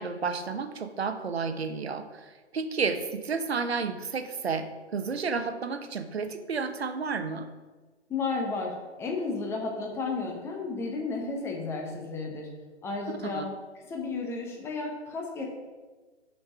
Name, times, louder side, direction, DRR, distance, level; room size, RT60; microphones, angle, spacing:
voice 1, 0.0-7.5 13.2-13.4, right 5 dB, 65° right, 8 dB, 1.0 m, -31 dB
voice 2, 8.1-12.5 12.8-13.5 13.9-15.4, left 3 dB, 5° left, 0 dB, 0.9 m, -33 dB
7.7 x 5.7 x 5.7 m, 1.3 s
figure-of-eight pair, 130°, 35 cm